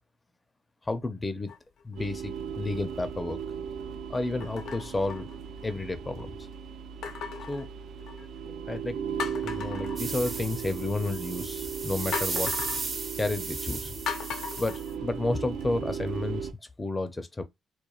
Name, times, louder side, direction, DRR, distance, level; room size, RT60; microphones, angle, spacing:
voice 1, 0.8-1.5 1.8-3.4 4.1-5.3 5.6-6.4 7.5-7.7 8.7-9.0 9.4-12.5 13.2-13.9 14.6-16.5 16.8-17.4, left 2 dB, 20° left, 0.4 m, -31 dB
sound 1, 1.5-2.0 2.6-2.8 4.4-5.9 7.0-8.4 8.8-8.9 9.2-10.7 12.1-12.9 14.1-15.6 16.1-16.2, left 6 dB, 80° left, 0.4 m, -38 dB
sound 2, 2.0-16.5, right 7 dB, 75° right, 0.4 m, -37 dB
sound 3, 10.0-14.9, right 4 dB, 55° right, 0.8 m, -35 dB
2.9 x 2.2 x 2.3 m
cardioid pair, 90°, 0 cm